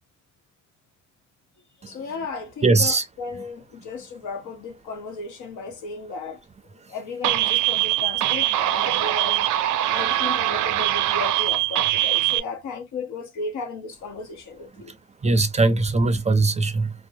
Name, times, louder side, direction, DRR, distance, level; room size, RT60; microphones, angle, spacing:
voice 1, 1.9-6.4 6.9-9.5 9.9-14.9, left 4 dB, 75° left, 0.9 m, -35 dB
voice 2, 2.6-3.0 15.2-16.9, right 3 dB, 25° right, 0.4 m, -20 dB
sound 1, 7.2-12.4, right 14 dB, 80° right, 0.5 m, -22 dB
2.7 x 2.1 x 2.6 m
cardioid pair, 90°, 30 cm